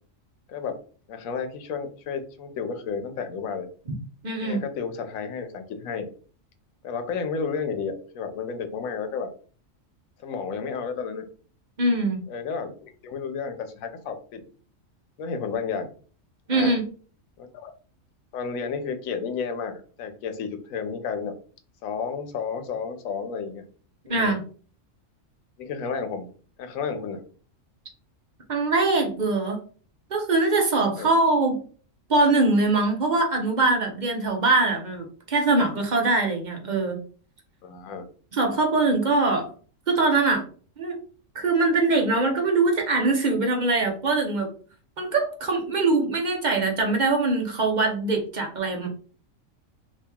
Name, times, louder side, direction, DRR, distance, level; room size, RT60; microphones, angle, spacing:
voice 1, 1.1-3.7 4.4-6.1 6.8-9.3 10.2-11.2 12.3-14.4 15.2-15.9 16.5-16.7 17.4-17.7 18.3-21.3 21.8-23.6 24.1-24.4 25.6-26.3 26.6-27.2 31.0-31.1 37.6-38.1, left 5 dB, 85° left, 7 dB, 1.0 m, -32 dB
voice 2, 4.2-4.6 11.8-12.2 16.5-16.8 24.1-24.4 28.5-29.6 30.1-31.6 32.1-37.0 38.3-39.5 39.9-40.4 40.8-41.0 41.3-44.5 45.0-48.9, right 3 dB, 40° right, 2 dB, 0.7 m, -22 dB
2.9 x 2.8 x 3.4 m, 0.41 s
omnidirectional pair, 1.4 m